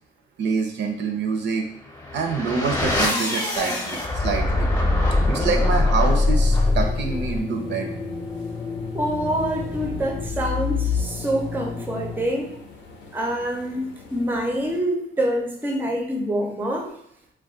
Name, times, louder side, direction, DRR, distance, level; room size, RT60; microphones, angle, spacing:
voice 1, 0.4-1.6 2.1-4.7 5.3-7.9, right 5 dB, 65° right, 3 dB, 0.5 m, -26 dB
sound 1, 1.8-12.5, left 2 dB, 20° left, 0.7 m, -24 dB
sound 2, 5.9-14.8, left 3 dB, 70° left, 0.6 m, -46 dB
voice 2, 8.9-12.6 13.1-16.9, right 1 dB, 10° right, 2 dB, 0.5 m, -26 dB
2.3 x 2.2 x 3.7 m, 0.73 s
cardioid pair, 90°, 20 cm